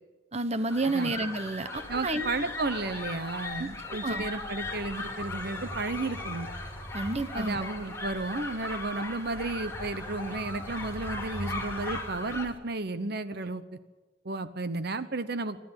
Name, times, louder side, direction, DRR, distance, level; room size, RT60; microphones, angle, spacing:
voice 1, 0.3-2.3 3.6-3.7 4.0-4.2 6.9-7.7, right 2 dB, 35° right, 11 dB, 1.1 m, -30 dB
sound 1, 0.7-12.5, left 2 dB, 15° left, 2.8 m, -38 dB
sound 2, 1.7-12.6, equal, 10° right, 2.8 m, -44 dB
voice 2, 1.9-6.5 7.3-13.6 14.2-15.6, right 3 dB, 60° right, 12 dB, 1.0 m, -33 dB
26.5 x 13.0 x 9.9 m, 1.2 s
head